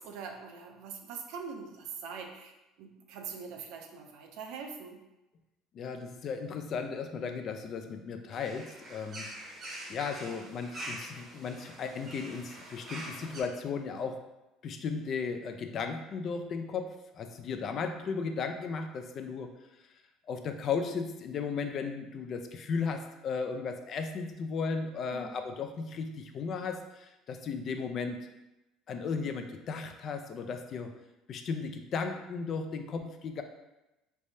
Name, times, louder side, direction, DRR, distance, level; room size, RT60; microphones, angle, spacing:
voice 1, 0.0-5.0 25.1-25.4, right 5 dB, 75° right, 3 dB, 0.5 m, -43 dB
voice 2, 5.7-9.2 9.9-14.2 14.6-19.5 20.3-28.2 28.9-30.9 31.3-33.4, left 5 dB, 45° left, 6 dB, 0.4 m, -35 dB
sound 1, 8.3-13.4, right 1 dB, 35° right, 0.8 m, -44 dB
3.3 x 3.1 x 2.7 m, 0.98 s
cardioid pair, 120°, 0 cm